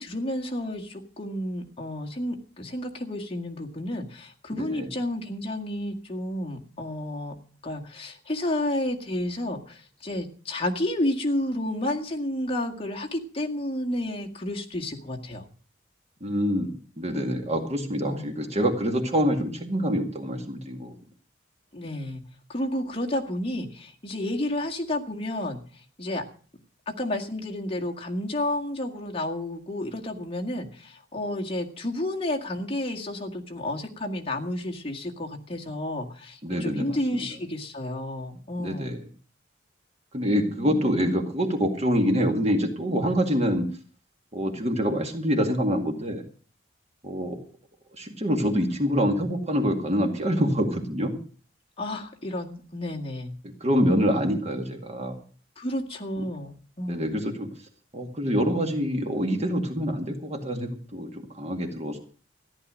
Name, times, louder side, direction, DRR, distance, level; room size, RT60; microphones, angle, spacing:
voice 1, 0.0-7.3 7.6-15.5 18.0-18.3 21.7-22.2 22.5-25.6 26.0-26.2 26.9-38.9 40.5-41.2 51.8-53.3 55.6-57.2, left 1 dB, 30° left, 1 dB, 2.0 m, -31 dB
voice 2, 4.5-4.9 16.2-21.0 36.4-36.9 37.1-37.2 38.6-39.0 40.1-43.7 44.3-46.2 47.0-47.4 48.0-51.2 53.4-55.2 56.2-56.3 56.9-57.5 57.9-62.0, equal, 35° right, 4 dB, 2.1 m, -26 dB
14.5 x 10.5 x 6.4 m, 0.41 s
head